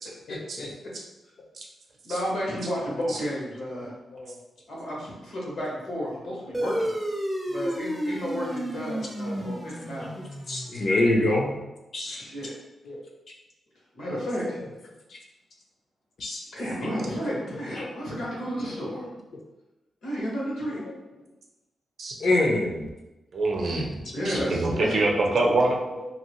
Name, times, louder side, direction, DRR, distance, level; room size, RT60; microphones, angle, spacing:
voice 1, 0.3-0.7 3.7-4.3 8.9-9.0 9.3-9.4 10.0-11.6 11.9-12.2 12.8-13.0 15.1-15.2 16.2-16.4 17.3-17.9 18.1-18.2 18.9-19.1 20.7-20.8 22.2-22.9 24.7-25.0 25.8-26.1, left 2 dB, 55° left, 0 dB, 0.6 m, -27 dB
voice 2, 2.0-3.9 4.7-6.9 7.5-10.1 12.1-12.5 13.9-14.6 16.5-19.1 20.0-20.8 23.7-23.8 24.1-24.9, equal, 75° left, -5 dB, 1.3 m, -32 dB
sound 1, 6.5-11.4, equal, 5° right, 0.4 m, -32 dB
voice 3, 23.3-25.8, right 2 dB, 55° right, 0 dB, 0.5 m, -25 dB
2.8 x 2.6 x 2.9 m, 0.99 s
wide cardioid pair, 150°, 0 cm